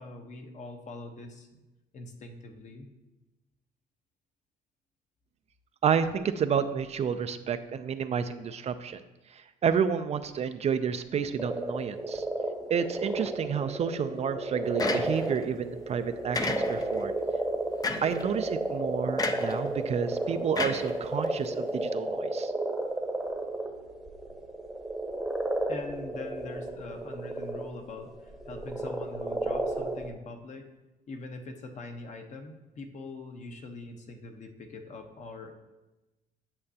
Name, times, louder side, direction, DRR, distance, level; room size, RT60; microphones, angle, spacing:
voice 1, 0.0-1.5 1.9-2.9 25.7-30.7 31.1-35.5, left 2 dB, 45° left, 5 dB, 1.0 m, -43 dB
voice 2, 5.8-9.0 9.3-12.2 12.7-17.1 18.0-22.5, right 7 dB, 40° right, 10 dB, 0.4 m, -30 dB
sound 1, 11.4-30.1, right 1 dB, ahead, 0.9 m, -32 dB
sound 2, 14.8-15.4 16.3-17.0 17.8-18.2 19.2-19.6 20.6-21.5, left 4 dB, 20° left, 0.5 m, -32 dB
8.8 x 7.4 x 2.8 m, 1.1 s
cardioid pair, 110°, 17 cm